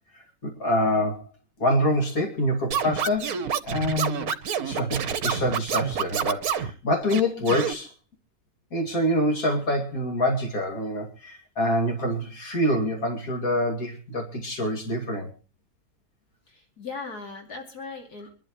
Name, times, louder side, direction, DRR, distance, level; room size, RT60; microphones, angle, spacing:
voice 1, 0.1-1.2 1.6-3.3 3.6-4.3 4.6-7.9 8.7-15.3, equal, 65° left, 1 dB, 2.9 m, -26 dB
Scratching (performance technique), 2.7-6.7 7.1-7.7, right 7 dB, 70° right, 1.5 m, -28 dB
voice 2, 16.5-18.3, left 4 dB, 80° left, 2 dB, 3.2 m, -38 dB
25.0 x 12.0 x 3.1 m, 0.34 s
omnidirectional pair, 1.6 m